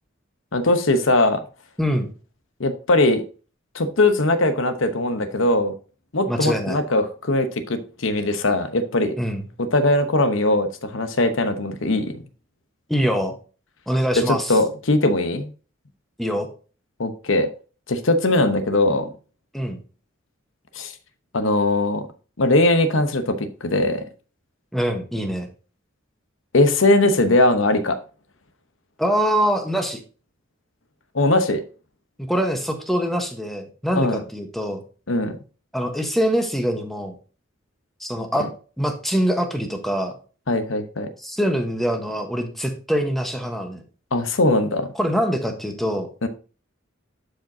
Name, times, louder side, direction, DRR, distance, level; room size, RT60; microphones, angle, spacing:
voice 1, 0.5-1.4 2.6-3.2 3.7-5.7 6.1-9.1 9.6-12.2 14.2-15.5 17.0-17.5 17.9-19.1 20.8-20.9 21.3-22.1 22.4-24.0 26.5-28.0 31.1-31.6 34.0-34.2 35.1-35.4 40.5-41.1 44.1-44.9 46.2-46.3, left 2 dB, 75° left, 9 dB, 0.9 m, -20 dB
voice 2, 1.8-2.1 6.3-6.8 9.2-9.4 12.9-13.3 13.9-14.6 16.2-16.5 19.5-19.8 24.7-25.5 29.0-30.0 32.2-34.8 35.7-37.2 38.0-38.5 38.8-40.1 41.2-43.8 44.9-46.1, equal, ahead, 4 dB, 1.1 m, -24 dB
11.5 x 5.0 x 2.7 m, 0.37 s
head